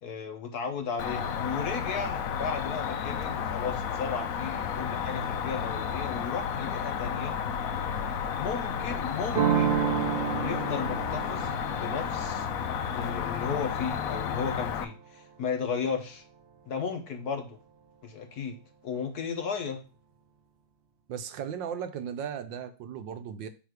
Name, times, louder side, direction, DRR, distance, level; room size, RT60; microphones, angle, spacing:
voice 1, 0.0-7.4 8.3-9.7 10.4-12.5 12.9-16.2 16.7-17.6 18.0-18.6 18.8-19.8, left 5 dB, 60° left, 5 dB, 1.2 m, -35 dB
Cricket, 1.0-14.8, left 7 dB, 80° left, 0.7 m, -32 dB
sound 1, 9.3-14.9, right 9 dB, 55° right, 0.6 m, -31 dB
voice 2, 21.1-23.5, right 8 dB, 70° right, 10 dB, 1.3 m, -36 dB
8.7 x 3.2 x 4.9 m, 0.33 s
omnidirectional pair, 2.2 m